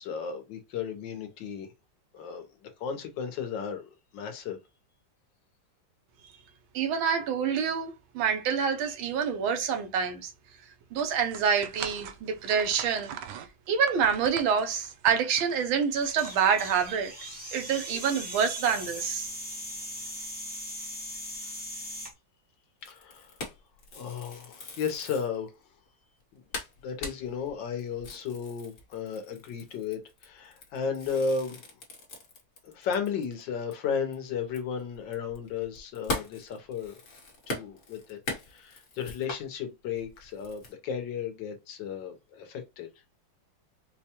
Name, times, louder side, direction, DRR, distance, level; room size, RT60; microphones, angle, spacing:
voice 1, 0.0-1.7 2.1-4.6 22.9-23.3 23.9-25.5 26.8-31.6 32.6-37.0 37.5-38.2 38.5-42.9, left 6 dB, 70° left, 1.5 m, -34 dB
voice 2, 6.7-10.3 10.9-13.4 13.7-19.3, right 7 dB, 90° right, 1.5 m, -27 dB
sound 1, 10.9-17.1, right 9 dB, 70° right, 1.0 m, -43 dB
sound 2, 16.0-22.1, equal, 5° right, 0.8 m, -39 dB
sound 3, 22.8-25.3 25.9-26.0 26.2-26.3 26.5-33.4 33.7-33.8 34.1-39.4 40.0-40.7, left 2 dB, 45° left, 1.3 m, -40 dB
4.8 x 2.2 x 2.8 m
omnidirectional pair, 2.1 m